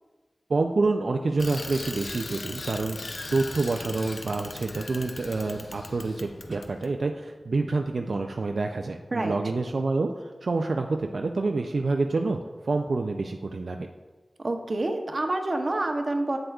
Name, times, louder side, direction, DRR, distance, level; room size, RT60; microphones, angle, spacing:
voice 1, 0.5-12.4 12.6-13.8, right 3 dB, 80° right, 3 dB, 0.3 m, -27 dB
Bicycle, 1.4-6.9, left 3 dB, 80° left, 0.5 m, -39 dB
voice 2, 14.4-16.4, right 2 dB, 50° right, 4 dB, 0.7 m, -27 dB
7.7 x 7.7 x 2.3 m, 1.3 s
wide cardioid pair, 75°, 0 cm